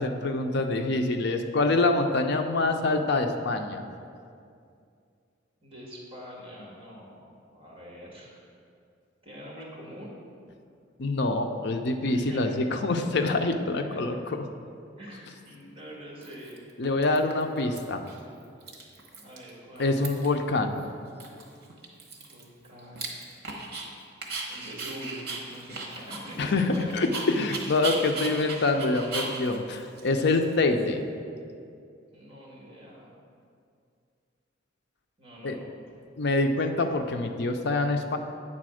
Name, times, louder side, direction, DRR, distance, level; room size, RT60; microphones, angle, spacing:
voice 1, 0.0-3.8 11.0-14.4 16.8-18.0 19.8-20.8 26.4-31.0 35.4-35.6 36.2-38.2, left 2 dB, 60° left, 6 dB, 0.5 m, -26 dB
voice 2, 5.6-8.4 9.2-10.2 12.1-12.6 13.6-13.7 13.9-14.0 15.0-16.6 19.2-20.0 22.2-23.2 24.5-27.1 28.2-28.4 32.1-33.2 35.2-35.7, equal, 30° right, -4 dB, 1.8 m, -45 dB
Dog, 15.5-15.6 16.2-16.7 17.0-17.8 18.1-18.2 18.4-19.5 19.8-20.4 20.8-20.9 21.2-23.9 24.2-30.8, right 3 dB, 55° right, 1.1 m, -37 dB
8.7 x 4.1 x 6.2 m, 2.4 s
head